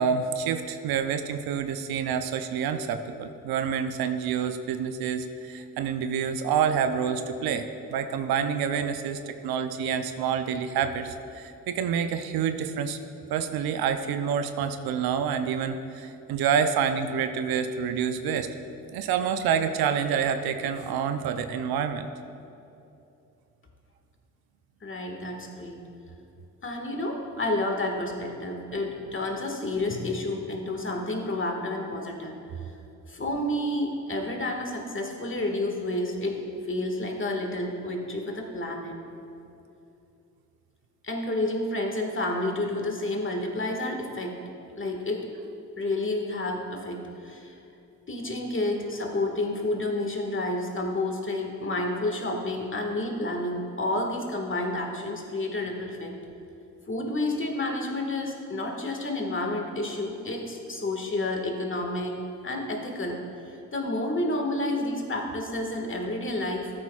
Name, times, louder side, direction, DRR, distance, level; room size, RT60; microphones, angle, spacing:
voice 1, 0.0-7.6 7.9-13.0 13.3-18.5 18.9-22.1, right 7 dB, 80° right, 9 dB, 0.6 m, -27 dB
voice 2, 24.8-25.8 26.6-32.3 33.1-39.0 41.0-44.4 44.8-45.3 45.8-47.6 48.1-56.1 56.9-63.2 63.5-66.7, left 1 dB, 35° left, 2 dB, 1.7 m, -30 dB
13.5 x 8.7 x 2.3 m, 2.7 s
supercardioid pair, 45°, 36 cm